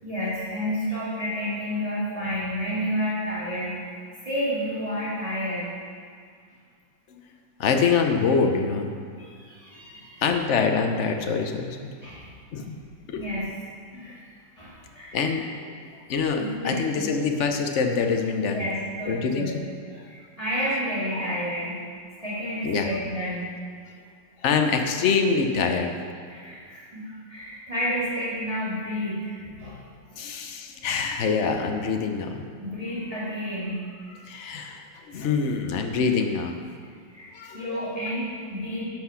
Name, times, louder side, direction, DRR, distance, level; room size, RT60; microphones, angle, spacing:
voice 1, 0.0-5.7 9.2-10.2 12.0-12.3 13.1-13.4 13.9-14.2 14.6-15.4 16.4-17.1 18.4-19.5 19.9-21.8 22.2-23.5 26.3-29.8 30.1-30.2 32.6-34.2 37.1-37.3 37.5-38.9, equal, 20° right, -10 dB, 2.4 m, -30 dB
voice 2, 7.6-8.9 10.2-11.8 12.5-12.8 13.1-13.2 15.1-15.5 16.1-18.7 19.1-19.6 21.1-21.3 22.6-22.9 24.4-25.9 30.2-32.4 34.3-36.6 37.3-37.9, left 5 dB, 55° left, 4 dB, 0.9 m, -25 dB
10.5 x 6.2 x 5.7 m, 2.1 s
omnidirectional pair, 2.0 m